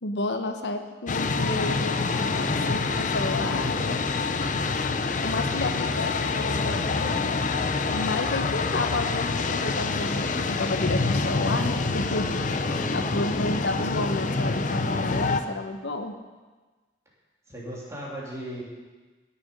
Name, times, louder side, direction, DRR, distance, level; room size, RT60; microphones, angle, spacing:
voice 1, 0.0-4.0 5.2-7.3 7.9-12.3 12.9-16.2, left 2 dB, 85° left, 6 dB, 0.9 m, -31 dB
sound 1, 1.1-15.4, left 4 dB, 45° left, 0.6 m, -26 dB
voice 2, 12.6-13.1 17.5-18.6, equal, 15° right, -5 dB, 3.0 m, -37 dB
17.0 x 6.8 x 5.3 m, 1.3 s
head